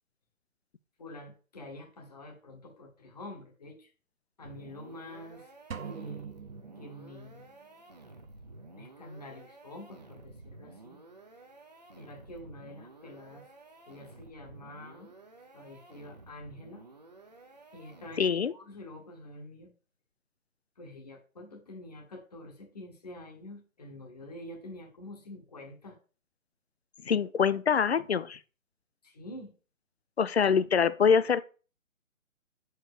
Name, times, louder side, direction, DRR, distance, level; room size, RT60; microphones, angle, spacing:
voice 1, 1.0-3.9 4.4-5.5 5.8-6.3 6.8-7.5 8.7-11.0 12.0-13.5 13.9-15.1 15.5-16.8 17.7-19.7 20.8-26.0 29.0-29.5, left 1 dB, 30° left, 1.1 m, -47 dB
sound 1, 4.4-18.5, right 2 dB, 30° right, 0.7 m, -52 dB
sound 2, 5.7-7.5, right 7 dB, 75° right, 1.0 m, -43 dB
voice 2, 18.2-18.5 27.1-28.4 30.2-31.4, left 6 dB, 50° left, 0.5 m, -24 dB
6.0 x 4.6 x 4.7 m
hypercardioid pair, 170°, 41 cm